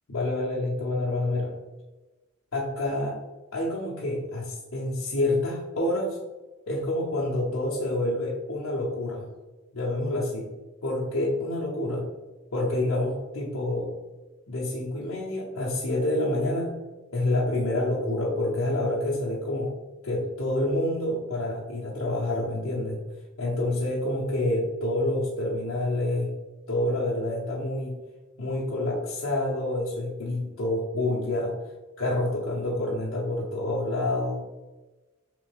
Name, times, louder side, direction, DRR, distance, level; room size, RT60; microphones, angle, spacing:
voice 1, 0.1-1.6 2.5-3.2 3.5-6.2 6.7-9.3 9.7-10.5 10.8-12.1 12.5-13.9 14.5-16.8 17.1-19.7 20.0-23.1 23.4-26.3 26.7-28.0 28.4-31.5 32.0-34.4, left 1 dB, 80° left, -4 dB, 0.7 m, -28 dB
3.5 x 3.3 x 3.4 m, 1.2 s
head